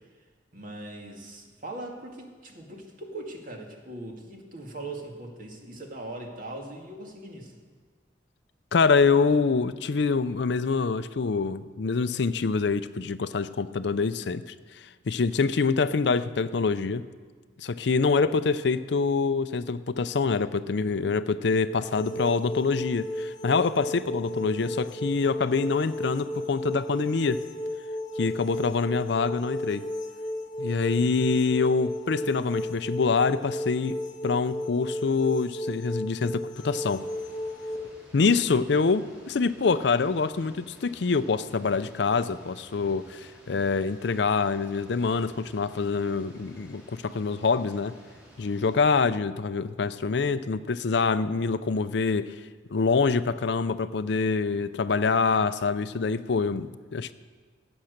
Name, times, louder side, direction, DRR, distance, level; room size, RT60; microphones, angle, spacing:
voice 1, 0.5-7.5, right 2 dB, 45° right, 1 dB, 2.0 m, -40 dB
voice 2, 8.7-14.5 15.1-17.0 17.6-27.4 28.2-29.8 30.6-34.0 34.2-37.0 38.1-47.9 48.4-52.4 52.7-57.1, left 4 dB, 60° left, 13 dB, 0.5 m, -25 dB
sound 1, 21.8-37.8, left 1 dB, 20° left, 1.8 m, -34 dB
sound 2, 36.6-49.0, equal, 5° right, 3.6 m, -54 dB
16.5 x 8.8 x 6.6 m, 1.5 s
head